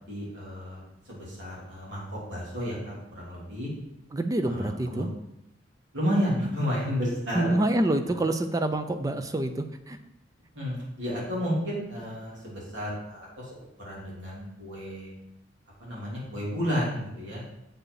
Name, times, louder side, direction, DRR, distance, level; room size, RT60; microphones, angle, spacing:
voice 1, 0.1-3.7 4.4-5.1 5.9-7.5 10.5-15.1 15.8-17.4, equal, 80° right, -5 dB, 3.3 m, -32 dB
voice 2, 4.1-5.1 7.3-10.0, right 1 dB, 20° right, 8 dB, 0.4 m, -27 dB
7.5 x 5.0 x 4.8 m, 0.84 s
head